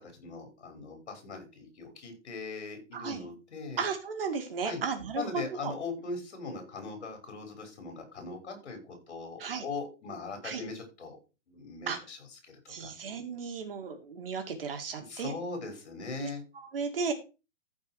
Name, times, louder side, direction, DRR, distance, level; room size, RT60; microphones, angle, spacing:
voice 1, 0.0-3.8 4.6-4.8 5.2-11.2 11.5-12.2 12.4-12.9 14.9-16.4, left 3 dB, 60° left, 4 dB, 6.5 m, -40 dB
voice 2, 2.9-3.3 3.8-5.7 9.4-9.7 10.4-10.6 11.9-12.0 12.7-15.4 16.2-16.3 16.5-17.1, right 5 dB, 50° right, 6 dB, 2.5 m, -35 dB
14.5 x 5.3 x 4.8 m, 0.30 s
hypercardioid pair, 180°, 37 cm